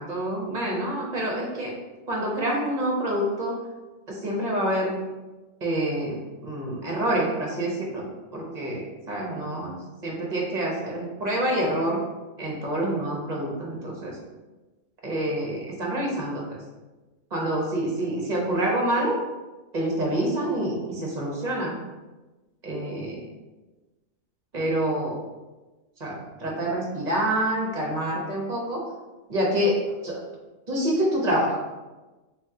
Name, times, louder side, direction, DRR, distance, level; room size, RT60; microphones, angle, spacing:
voice 1, 0.0-1.7 2.1-3.6 4.1-4.9 5.6-9.8 10.0-12.0 12.4-14.2 15.0-16.6 17.3-19.2 19.7-21.8 22.6-23.2 24.5-25.2 26.0-28.8 29.3-30.2 30.7-31.6, right 1 dB, 35° right, -2 dB, 0.9 m, -27 dB
3.4 x 3.1 x 3.6 m, 1.2 s
omnidirectional pair, 1.4 m